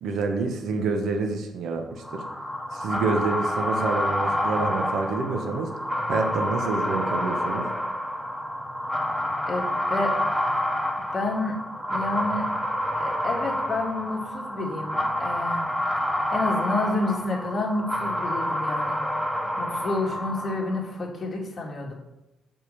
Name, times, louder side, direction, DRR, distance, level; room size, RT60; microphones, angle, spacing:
voice 1, 0.0-2.2 2.7-5.7 6.1-7.7, right 4 dB, 75° right, 4 dB, 1.2 m, -27 dB
sound 1, 2.0-20.9, left 1 dB, ahead, 0.9 m, -28 dB
voice 2, 9.5-10.1 11.1-11.6 11.9-12.5 13.0-15.7 16.0-19.0 19.6-21.9, left 2 dB, 40° left, -1 dB, 2.0 m, -29 dB
5.4 x 5.2 x 6.6 m, 0.93 s
cardioid pair, 90°, 0 cm